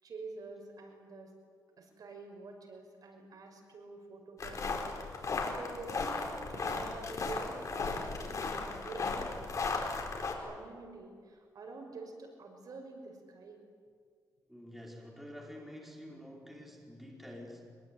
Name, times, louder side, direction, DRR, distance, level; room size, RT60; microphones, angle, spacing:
voice 1, 0.0-1.3 1.8-9.5 10.4-13.6, right 3 dB, 65° right, 3 dB, 5.9 m, -47 dB
sound 1, 4.4-10.3, left 4 dB, 50° left, 4.6 m, -36 dB
voice 2, 14.5-17.7, left 1 dB, ahead, -2 dB, 5.2 m, -48 dB
24.5 x 22.5 x 9.7 m, 2.1 s
wide cardioid pair, 120°, 7 cm